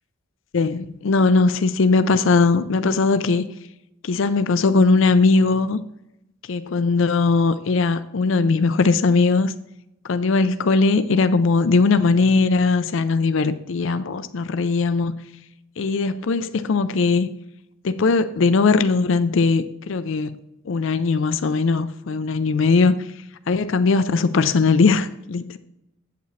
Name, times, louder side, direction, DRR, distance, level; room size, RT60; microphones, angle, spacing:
voice 1, 0.5-3.5 4.0-5.8 6.5-9.5 10.1-15.1 15.8-17.3 17.8-20.4 20.7-23.1 23.5-25.6, left 4 dB, 65° left, 0.4 m, -19 dB
8.2 x 8.1 x 3.1 m
head